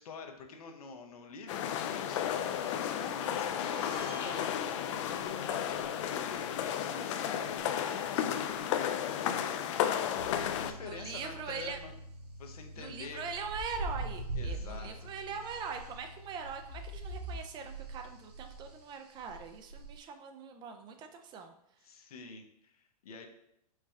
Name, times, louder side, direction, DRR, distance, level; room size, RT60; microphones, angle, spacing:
voice 1, 0.0-9.9 10.2-11.9 12.4-13.3 14.4-15.1 21.8-23.3, left 5 dB, 70° left, 5 dB, 0.8 m, -47 dB
sound 1, 1.5-10.7, left 9 dB, 50° left, 0.4 m, -33 dB
sound 2, 3.6-4.5 5.8-5.9 7.6-7.7 8.6-8.7 10.1-10.4 10.9-11.0 11.4-11.9 13.3-16.0 16.4-20.0, right 2 dB, 85° right, 0.9 m, -42 dB
sound 3, 10.2-18.8, left 1 dB, 50° right, 1.6 m, -51 dB
voice 2, 10.8-11.8 12.8-21.5, right 5 dB, 25° right, 6 dB, 0.4 m, -42 dB
4.7 x 2.2 x 4.2 m, 0.76 s
hypercardioid pair, 120°, 20 cm